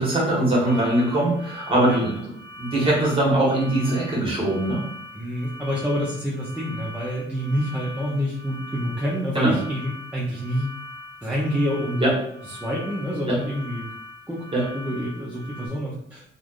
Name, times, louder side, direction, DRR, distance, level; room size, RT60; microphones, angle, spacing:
voice 1, 0.0-4.8 9.3-9.6 12.0-12.1 13.3-13.4 14.5-15.0, right 1 dB, 25° right, -4 dB, 1.4 m, -22 dB
sound 1, 0.7-15.7, left 1 dB, 60° left, 0.8 m, -41 dB
voice 2, 5.1-10.7 11.2-12.0 12.6-13.9 14.3-14.5 14.7-16.2, equal, 5° right, -6 dB, 0.6 m, -27 dB
3.1 x 2.5 x 2.5 m, 0.70 s
cardioid pair, 90°, 20 cm